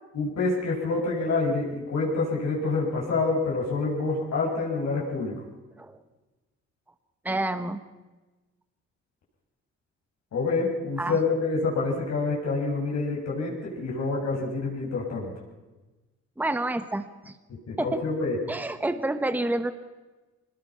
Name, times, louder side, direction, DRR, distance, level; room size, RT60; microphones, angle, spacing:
voice 1, 0.1-5.4 10.3-15.3 17.5-18.4, left 3 dB, 60° left, -2 dB, 6.6 m, -27 dB
voice 2, 7.2-7.8 11.0-11.2 16.4-17.3 17.8-18.0 18.5-19.7, right 2 dB, 5° right, 9 dB, 1.2 m, -28 dB
23.0 x 20.5 x 5.8 m, 1.2 s
cardioid pair, 90°, 30 cm